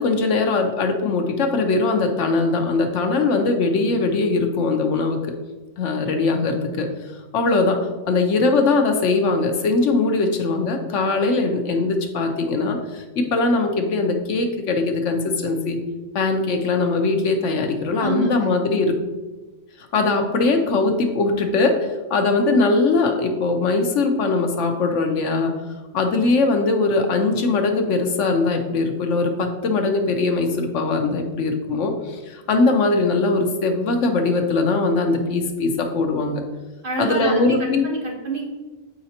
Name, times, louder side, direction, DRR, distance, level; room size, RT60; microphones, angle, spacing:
voice 1, 0.0-5.3 5.8-6.9 7.3-7.8 8.1-15.8 16.1-18.9 19.9-21.8 22.1-25.5 25.9-36.4 37.0-37.8, left 3 dB, 75° left, 4 dB, 1.1 m, -21 dB
voice 2, 18.0-18.5 36.8-38.5, right 2 dB, 45° right, -3 dB, 1.3 m, -27 dB
7.6 x 4.9 x 2.8 m, 1.2 s
omnidirectional pair, 1.3 m